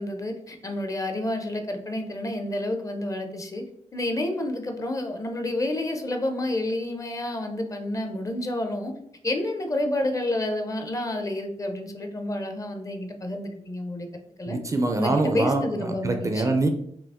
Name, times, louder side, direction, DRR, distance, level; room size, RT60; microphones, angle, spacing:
voice 1, 0.0-3.6 3.9-8.9 9.2-14.1 14.4-14.6 15.0-16.5, left 1 dB, 25° left, 5 dB, 0.5 m, -29 dB
voice 2, 14.5-16.7, right 2 dB, 25° right, 6 dB, 0.4 m, -24 dB
5.0 x 2.7 x 3.5 m, 0.69 s
wide cardioid pair, 175°, 12 cm